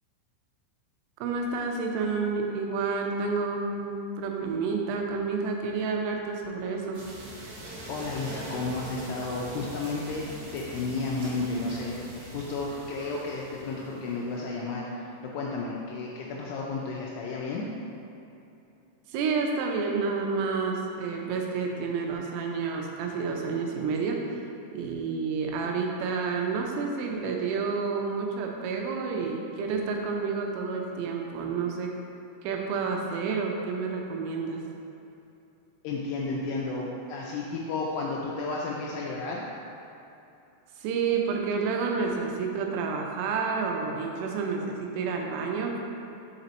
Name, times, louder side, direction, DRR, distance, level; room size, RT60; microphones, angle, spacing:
voice 1, 1.2-7.0 19.1-24.4 24.7-31.9 32.4-34.6 40.8-45.8, right 4 dB, 85° right, 1 dB, 3.3 m, -29 dB
sound 1, 6.9-14.5, right 1 dB, 70° right, 2.5 m, -42 dB
voice 2, 7.9-10.2 10.5-17.6 35.8-39.4, left 3 dB, 85° left, -3 dB, 3.0 m, -32 dB
7.2 x 4.0 x 4.3 m, 2.8 s
omnidirectional pair, 5.9 m